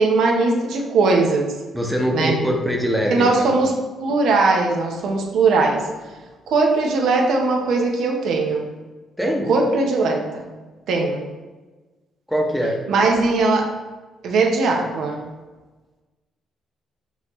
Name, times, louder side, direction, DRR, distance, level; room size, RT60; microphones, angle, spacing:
voice 1, 0.0-1.5 2.1-2.4 3.1-3.7 4.0-5.9 6.5-8.7 9.5-10.5 10.9-11.3 12.9-13.7 14.2-15.2, right 3 dB, 75° right, 1 dB, 0.7 m, -19 dB
voice 2, 1.7-3.5 9.2-9.5 12.3-12.8, equal, ahead, 0 dB, 0.8 m, -22 dB
5.5 x 2.9 x 3.0 m, 1.2 s
cardioid pair, 95°, 0 cm